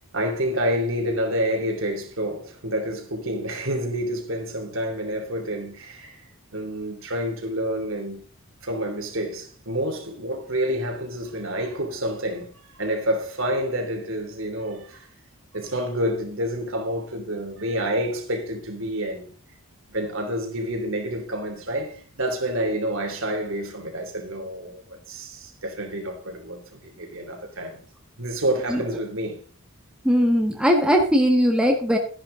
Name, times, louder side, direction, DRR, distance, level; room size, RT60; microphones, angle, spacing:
voice 1, 0.1-6.2 6.5-8.2 8.6-15.1 15.5-19.3 19.9-27.8 28.2-29.4, right 1 dB, 60° right, 3.0 m, -28 dB
voice 2, 30.0-32.0, equal, 5° right, 1.5 m, -19 dB
13.5 x 11.0 x 3.8 m
head